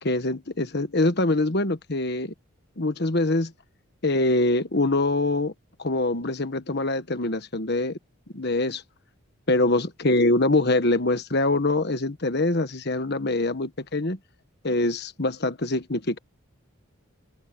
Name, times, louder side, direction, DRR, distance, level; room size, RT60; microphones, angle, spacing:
voice 1, 0.0-2.3 2.8-3.5 4.0-5.5 5.8-8.0 8.3-8.8 9.5-14.2 14.6-16.2, left 2 dB, 50° left, 1.4 m, -24 dB
open air
head